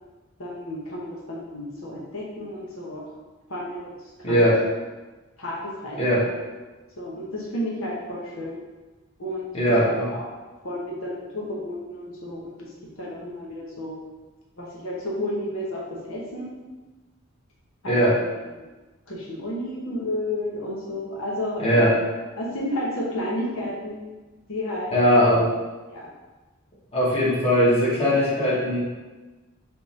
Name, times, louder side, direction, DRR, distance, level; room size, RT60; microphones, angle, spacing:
voice 1, 0.4-3.0 3.5-3.9 4.3-4.5 5.4-6.2 7.0-8.6 9.2-10.3 10.6-14.0 14.6-16.6 17.8-18.2 19.1-21.9 22.4-24.0 24.5-25.0 25.9-26.1, left 1 dB, 85° left, -4 dB, 1.0 m, -32 dB
voice 2, 4.2-4.6 6.0-6.3 9.5-10.1 17.9-18.2 21.6-21.9 24.9-25.5 26.9-28.8, equal, 30° left, -8 dB, 1.2 m, -19 dB
3.5 x 3.1 x 4.1 m, 1.2 s
head